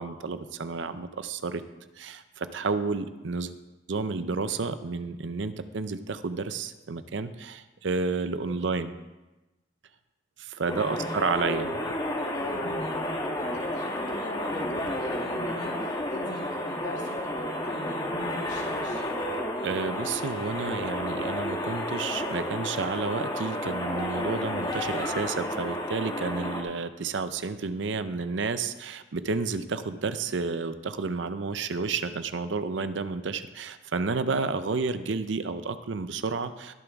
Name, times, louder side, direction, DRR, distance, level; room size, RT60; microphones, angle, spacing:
voice 1, 0.0-1.6 2.0-3.5 3.9-8.9 10.4-11.7 19.6-36.7, right 4 dB, 70° right, 11 dB, 0.6 m, -31 dB
voice 2, 10.7-11.1 12.3-19.0, left 1 dB, 75° left, -3 dB, 2.8 m, -40 dB
sound 1, 10.7-26.6, left 1 dB, 25° left, 1.3 m, -31 dB
20.5 x 7.0 x 3.6 m, 1.1 s
head